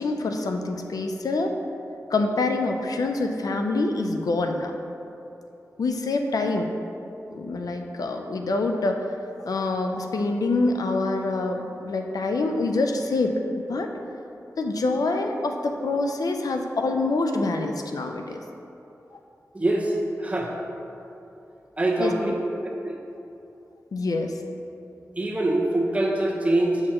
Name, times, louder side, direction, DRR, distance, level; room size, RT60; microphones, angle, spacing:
voice 1, 0.0-1.5 2.1-4.8 5.8-6.7 7.3-9.0 9.5-13.9 14.6-18.4 22.0-22.1 23.9-24.3, left 2 dB, 80° left, 4 dB, 0.5 m, -26 dB
voice 2, 19.5-20.5 21.8-22.3 22.8-23.0 25.1-26.8, right 1 dB, 20° right, -2 dB, 1.0 m, -24 dB
6.5 x 6.1 x 3.0 m, 2.8 s
cardioid pair, 60°, 6 cm